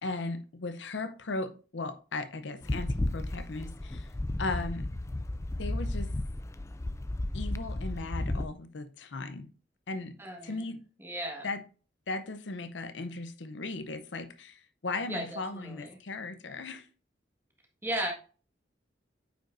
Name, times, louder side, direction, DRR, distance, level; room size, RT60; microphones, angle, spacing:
voice 1, 0.0-4.1 4.4-4.9 5.6-6.1 7.3-9.5 9.9-10.2 10.4-10.8 11.4-11.6 12.1-16.9, left 3 dB, 80° left, 0.7 m, -37 dB
sound 1, 2.6-8.5, left 1 dB, 15° left, 0.4 m, -33 dB
voice 2, 10.2-10.6 11.0-11.5 15.1-16.0 17.8-18.1, right 1 dB, 15° right, 1.5 m, -36 dB
8.9 x 5.3 x 2.6 m
head